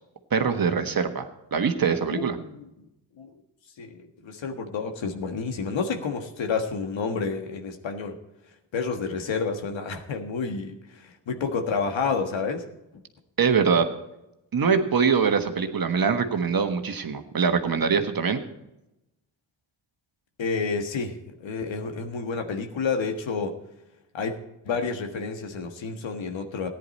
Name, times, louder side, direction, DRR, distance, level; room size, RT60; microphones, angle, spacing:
voice 1, 0.3-2.4 13.4-13.9 14.5-18.4, right 6 dB, 50° right, 7 dB, 1.4 m, -23 dB
voice 2, 2.1-2.6 3.2-3.3 3.8-8.2 8.7-12.7 20.4-23.6 24.1-24.3 24.6-26.7, left 5 dB, 75° left, 5 dB, 1.6 m, -30 dB
14.5 x 10.0 x 4.2 m, 0.90 s
cardioid pair, 65°, 46 cm